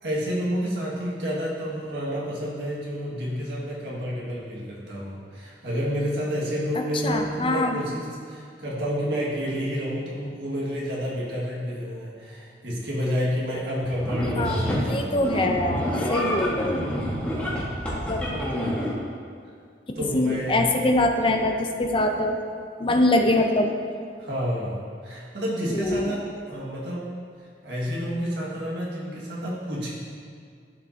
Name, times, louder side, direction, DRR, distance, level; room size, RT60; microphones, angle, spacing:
voice 1, 0.0-15.4 20.0-20.7 24.2-27.0 27.6-29.9, equal, 70° right, -6 dB, 1.8 m, -29 dB
voice 2, 7.0-7.8 14.4-16.7 18.1-18.2 20.1-22.4 22.8-23.7 25.7-26.1, left 1 dB, 30° left, 4 dB, 0.6 m, -23 dB
sound 1, 13.8-14.9 15.2-18.9, equal, 5° left, 1.4 m, -27 dB
12.0 x 5.0 x 2.7 m, 2.2 s
head